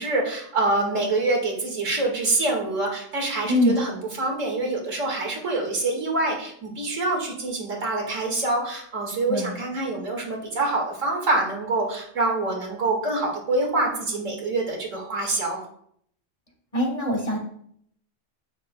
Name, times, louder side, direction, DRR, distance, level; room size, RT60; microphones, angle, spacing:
voice 1, 0.0-15.6, right 2 dB, 90° right, 0 dB, 2.2 m, -26 dB
voice 2, 16.7-17.4, left 1 dB, 30° left, 0 dB, 1.4 m, -22 dB
9.5 x 7.9 x 2.2 m, 0.67 s
omnidirectional pair, 1.3 m